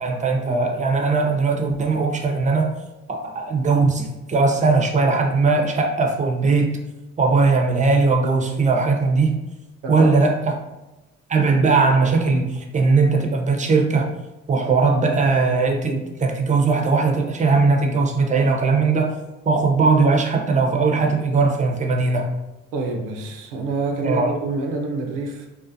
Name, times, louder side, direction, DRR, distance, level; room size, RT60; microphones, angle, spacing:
voice 1, 0.0-2.7 3.1-6.8 7.2-9.4 9.9-10.3 11.3-14.1 14.5-19.1 19.5-22.3 24.0-24.3, right 4 dB, 25° right, 2 dB, 0.5 m, -19 dB
voice 2, 9.8-10.2 22.7-25.5, right 3 dB, 85° right, 3 dB, 0.5 m, -27 dB
2.4 x 2.1 x 2.5 m, 1.0 s
supercardioid pair, 65°, 32 cm